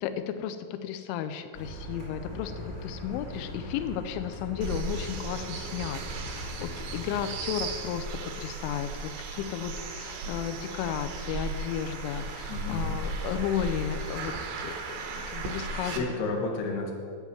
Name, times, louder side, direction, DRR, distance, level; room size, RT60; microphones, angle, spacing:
voice 1, 0.0-16.0, left 9 dB, 90° left, 10 dB, 2.6 m, -34 dB
Car, 1.5-7.9, left 1 dB, 25° left, 2.4 m, -41 dB
sound 1, 4.6-16.0, right 3 dB, 85° right, 2.2 m, -36 dB
voice 2, 12.5-12.9 15.6-16.9, left 3 dB, 65° left, 0 dB, 3.1 m, -32 dB
9.5 x 8.1 x 7.1 m, 2.2 s
omnidirectional pair, 5.9 m